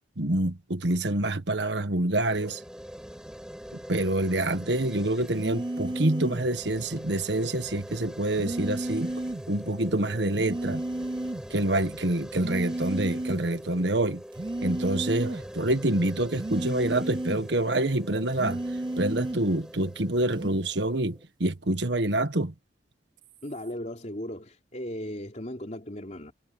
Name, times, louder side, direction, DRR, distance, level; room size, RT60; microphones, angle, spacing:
voice 1, 0.2-2.6 3.9-9.1 9.5-10.8 11.5-14.2 14.6-18.6 19.0-22.5, right 1 dB, 65° right, 1.5 m, -27 dB
sound 1, 2.2-21.2, equal, 5° right, 6.5 m, -43 dB
sound 2, 5.3-6.5 8.4-9.5 10.4-11.5 12.3-13.5 14.3-15.5 16.3-17.5 18.3-19.5 20.3-20.7, right 1 dB, 25° right, 0.5 m, -33 dB
voice 2, 23.4-26.3, left 1 dB, 40° left, 3.3 m, -37 dB
head